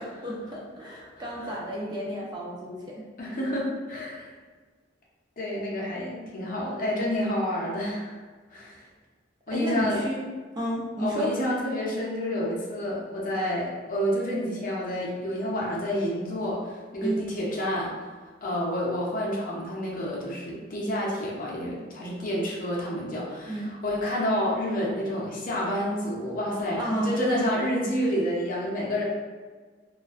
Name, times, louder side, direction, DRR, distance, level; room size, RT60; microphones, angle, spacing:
voice 1, 0.0-2.8 9.5-10.2 10.6-11.3 17.0-17.2 23.5-23.7 26.8-27.2, right 1 dB, 20° right, -4 dB, 0.4 m, -31 dB
voice 2, 1.2-1.6 3.2-4.3 5.4-8.2 8.5-8.8 9.5-10.0 11.0-17.9 18.4-29.0, equal, 45° left, -4 dB, 0.5 m, -29 dB
2.4 x 2.2 x 2.3 m, 1.4 s
head